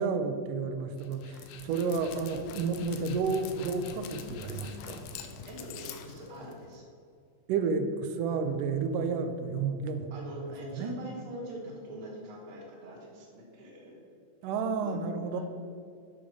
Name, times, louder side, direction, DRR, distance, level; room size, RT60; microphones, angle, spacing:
voice 1, 0.0-5.1 7.5-10.1 10.7-11.0 14.4-15.4, right 5 dB, 85° right, 7 dB, 2.2 m, -31 dB
Dog, 1.0-6.8, left 8 dB, 80° left, 2.2 m, -45 dB
voice 2, 5.5-6.8 10.1-14.0 14.8-15.0 15.3-15.4, right 1 dB, 55° right, -5 dB, 2.6 m, -43 dB
8.6 x 5.3 x 6.3 m, 2.5 s
omnidirectional pair, 3.9 m